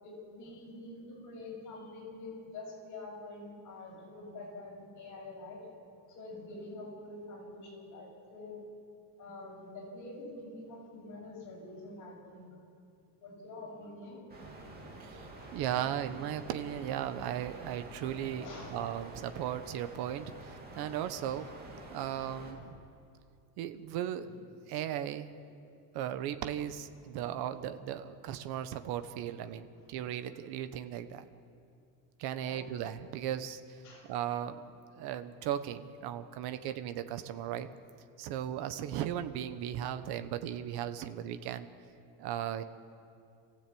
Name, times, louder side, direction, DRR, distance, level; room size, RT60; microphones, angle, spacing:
voice 1, 0.0-5.7 6.1-8.6 9.2-12.5 13.2-14.2 18.4-18.8 27.2-27.3 32.4-32.7 33.8-34.1 36.5-36.6, left 2 dB, 45° left, -2 dB, 7.1 m, -46 dB
sound 1, 14.3-22.5, right 2 dB, 20° right, 3.0 m, -48 dB
voice 2, 15.0-18.5 18.7-21.5 21.9-22.8 23.6-24.3 24.7-25.3 25.9-31.2 32.2-33.8 34.1-37.7 38.2-41.7 42.2-42.6, right 10 dB, 60° right, 10 dB, 1.2 m, -37 dB
27.0 x 15.5 x 8.6 m, 2.5 s
cardioid pair, 175°, 43 cm